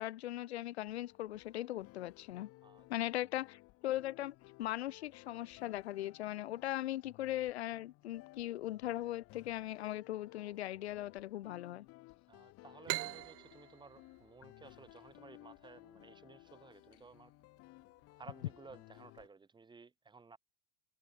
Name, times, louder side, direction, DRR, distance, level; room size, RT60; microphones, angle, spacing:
voice 1, 0.0-2.5 2.9-11.9, left 14 dB, 85° left, 2.1 m, -39 dB
sound 1, 0.9-19.3, left 21 dB, 45° left, 2.4 m, -59 dB
voice 2, 12.3-17.3 18.2-20.4, right 4 dB, 15° right, 7.0 m, -56 dB
sound 2, 12.9-16.3, right 25 dB, 45° right, 0.8 m, -43 dB
supercardioid pair, 125°, 32 cm